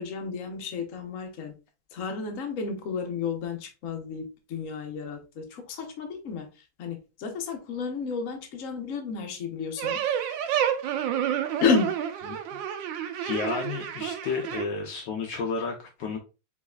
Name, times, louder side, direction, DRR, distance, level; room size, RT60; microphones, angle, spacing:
voice 1, 0.0-1.5 1.9-6.5 6.8-10.0 11.6-11.9, left 5 dB, 50° left, 1.2 m, -31 dB
sound 1, 9.8-14.6, right 9 dB, 75° right, 1.3 m, -29 dB
voice 2, 13.2-16.2, left 5 dB, 70° left, 1.3 m, -31 dB
4.7 x 4.0 x 2.3 m
omnidirectional pair, 2.2 m